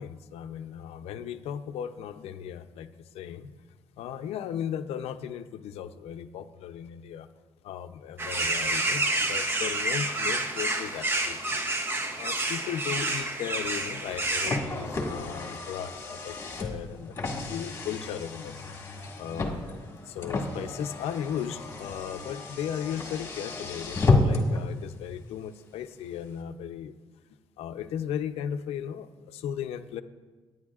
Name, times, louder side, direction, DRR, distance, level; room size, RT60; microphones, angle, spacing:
voice 1, 0.0-3.5 4.0-7.3 7.6-11.6 12.2-18.7 19.2-19.6 20.1-26.9 27.6-30.0, left 9 dB, 80° left, 10 dB, 0.6 m, -36 dB
sound 1, 8.2-14.6, right 2 dB, 20° right, 0.8 m, -29 dB
Car, 14.0-24.6, left 3 dB, 25° left, 1.7 m, -31 dB
26.0 x 9.3 x 2.4 m, 1.4 s
cardioid pair, 155°, 10 cm